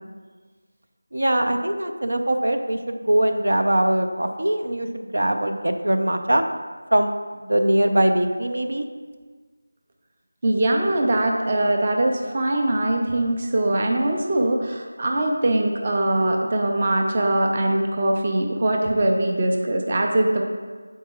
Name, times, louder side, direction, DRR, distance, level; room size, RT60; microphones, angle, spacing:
voice 1, 1.1-6.4 6.9-7.1 7.5-8.9, right 1 dB, 85° right, 5 dB, 0.6 m, -21 dB
voice 2, 10.4-20.4, right 1 dB, 25° right, 2 dB, 0.5 m, -22 dB
8.2 x 4.5 x 3.0 m, 1.5 s
figure-of-eight pair, 175°, 0 cm